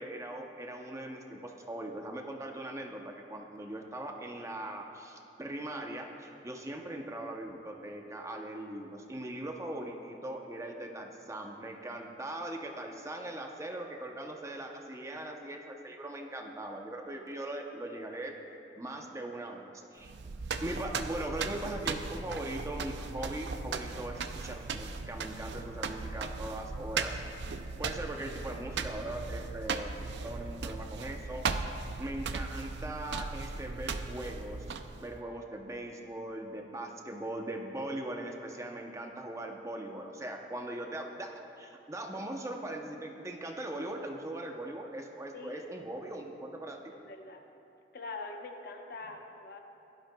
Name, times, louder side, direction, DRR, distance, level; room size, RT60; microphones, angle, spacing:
voice 1, 0.0-18.4 18.8-20.1 20.6-34.6 34.9-41.3 41.6-46.9, right 1 dB, 15° right, 2 dB, 0.7 m, -40 dB
sound 1, 20.0-35.1, right 4 dB, 70° right, 0.5 m, -37 dB
voice 2, 45.3-45.7 46.9-47.4 47.9-49.6, left 3 dB, 60° left, 3 dB, 0.9 m, -43 dB
16.5 x 12.0 x 2.3 m, 2.8 s
head